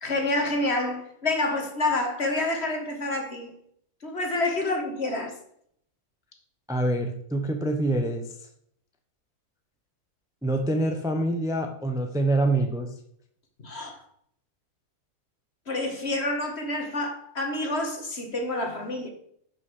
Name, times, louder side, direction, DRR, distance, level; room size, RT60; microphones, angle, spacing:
voice 1, 0.0-3.5 4.0-5.4 13.6-14.0 15.7-19.1, left 2 dB, 40° left, 2.0 m, -28 dB
voice 2, 6.7-8.2 10.4-12.9, right 1 dB, 5° right, 0.9 m, -25 dB
10.5 x 6.1 x 6.4 m
omnidirectional pair, 1.7 m